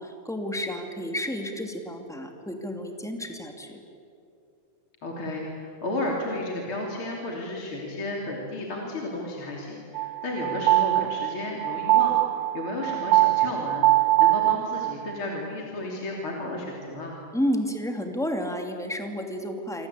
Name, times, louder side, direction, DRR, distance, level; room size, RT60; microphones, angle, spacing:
voice 1, 0.0-3.8 17.3-19.9, equal, ahead, 4 dB, 2.0 m, -31 dB
voice 2, 5.0-17.2, left 2 dB, 40° left, -1 dB, 3.7 m, -33 dB
sound 1, 9.9-15.1, right 17 dB, 70° right, 2.1 m, -22 dB
28.0 x 25.5 x 8.4 m, 2.7 s
omnidirectional pair, 3.8 m